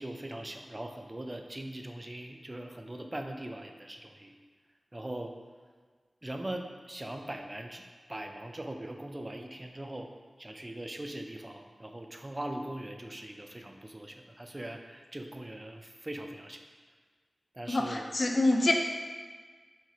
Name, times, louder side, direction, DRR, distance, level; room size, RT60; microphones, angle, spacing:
voice 1, 0.0-4.3 4.9-5.3 6.2-7.8 8.1-10.1 10.4-16.6 17.6-18.0, right 1 dB, 30° right, 4 dB, 0.4 m, -41 dB
voice 2, 17.7-18.7, left 2 dB, 60° left, 2 dB, 0.4 m, -26 dB
4.3 x 2.8 x 2.8 m, 1.5 s
cardioid pair, 40°, 0 cm